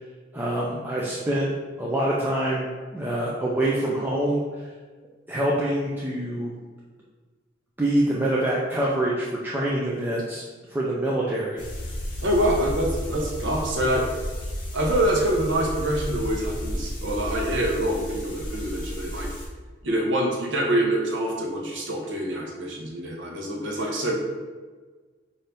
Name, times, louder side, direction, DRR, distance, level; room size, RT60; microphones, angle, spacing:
voice 1, 0.3-1.5 1.8-4.4 5.3-6.5 7.8-10.4 10.7-11.6, right 1 dB, 10° right, -5 dB, 0.5 m, -25 dB
sound 1, 11.6-19.5, equal, 50° left, 1.2 m, -33 dB
voice 2, 12.2-14.1 14.7-19.3 19.8-24.1, right 1 dB, 80° right, 0 dB, 0.9 m, -25 dB
5.7 x 2.7 x 3.4 m, 1.4 s
head